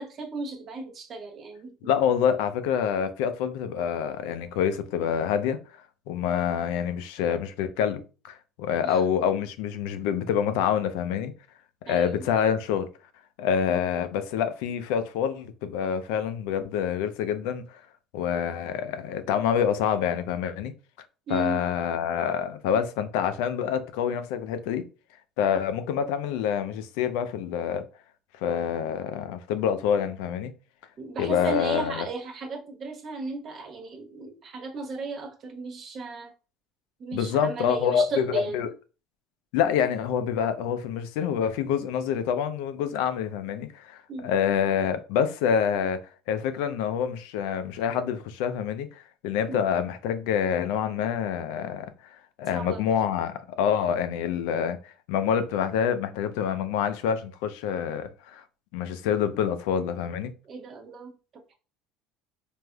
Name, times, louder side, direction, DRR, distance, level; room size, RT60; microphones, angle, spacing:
voice 1, 0.0-1.7 8.8-9.0 11.9-12.2 21.3-21.7 31.0-36.3 37.0-38.6 44.1-44.3 49.5-49.6 52.5-52.8 60.4-61.1, right 3 dB, 45° right, 0.8 m, -35 dB
voice 2, 1.8-5.6 6.1-11.3 11.9-12.9 13.4-17.8 18.1-20.7 21.3-24.8 25.4-27.8 28.4-30.5 31.2-32.0 37.1-38.7 39.5-46.0 46.3-51.9 52.4-58.4 58.7-60.3, left 8 dB, 80° left, 0.4 m, -27 dB
3.2 x 2.5 x 2.2 m
supercardioid pair, 95°, 0 cm